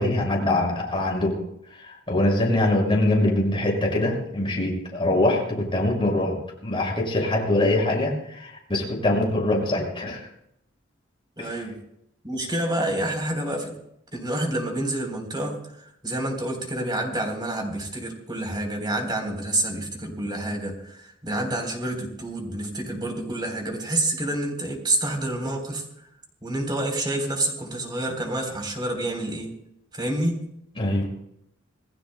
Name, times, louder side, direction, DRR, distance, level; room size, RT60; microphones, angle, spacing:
voice 1, 0.0-1.4 1.8-6.4 6.6-10.2 11.4-11.5 30.8-31.1, left 1 dB, 25° left, -2 dB, 6.1 m, -23 dB
voice 2, 11.4-11.8 12.2-13.7 14.1-15.6 16.0-25.8 26.4-29.5 29.9-30.4, right 1 dB, 20° right, 2 dB, 3.7 m, -28 dB
28.0 x 18.5 x 2.2 m, 0.77 s
head